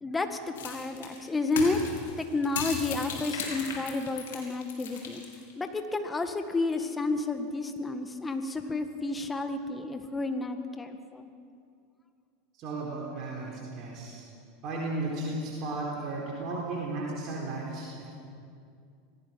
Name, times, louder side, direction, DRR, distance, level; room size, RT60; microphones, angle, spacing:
voice 1, 0.0-1.8 2.2-5.2 5.6-11.3, left 3 dB, 15° left, 7 dB, 1.9 m, -31 dB
sound 1, 0.6-5.5, left 5 dB, 70° left, 3.6 m, -36 dB
voice 2, 12.5-14.2 14.6-18.1, right 2 dB, 45° right, -3 dB, 4.2 m, -34 dB
25.5 x 17.5 x 5.9 m, 2.4 s
figure-of-eight pair, 80°, 0 cm